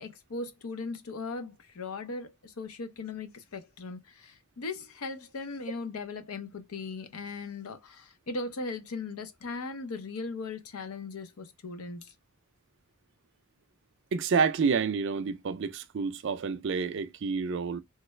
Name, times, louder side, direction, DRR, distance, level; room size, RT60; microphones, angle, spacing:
voice 1, 0.0-12.1, left 3 dB, 80° left, 0.6 m, -38 dB
voice 2, 14.1-17.8, right 5 dB, 55° right, 0.4 m, -29 dB
3.2 x 2.3 x 3.1 m
head